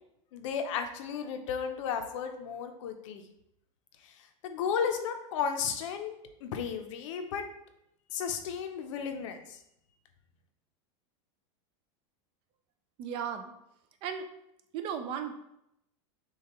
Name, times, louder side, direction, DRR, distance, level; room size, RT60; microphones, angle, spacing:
voice 1, 0.3-3.2 4.4-6.1 6.4-7.4 8.1-9.6, left 7 dB, 70° left, 6 dB, 0.6 m, -34 dB
voice 2, 13.0-13.5 14.0-14.2 14.7-15.3, right 8 dB, 35° right, 7 dB, 0.3 m, -35 dB
6.5 x 2.3 x 2.9 m, 0.79 s
supercardioid pair, 160°, 17 cm